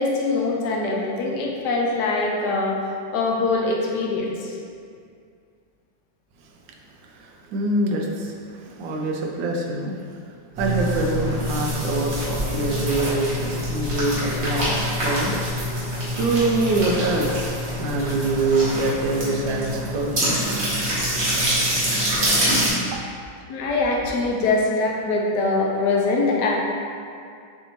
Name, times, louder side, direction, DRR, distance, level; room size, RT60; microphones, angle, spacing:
voice 1, 0.0-2.8 3.1-4.6 23.5-26.6, left 3 dB, 70° left, -1 dB, 1.2 m, -23 dB
voice 2, 7.2-8.3 8.6-10.0 10.6-15.3 16.1-20.3, right 2 dB, 80° right, 0 dB, 1.3 m, -24 dB
sound 1, 10.5-22.7, equal, 40° right, 1.3 m, -25 dB
6.5 x 2.6 x 3.0 m, 2.3 s
omnidirectional pair, 2.0 m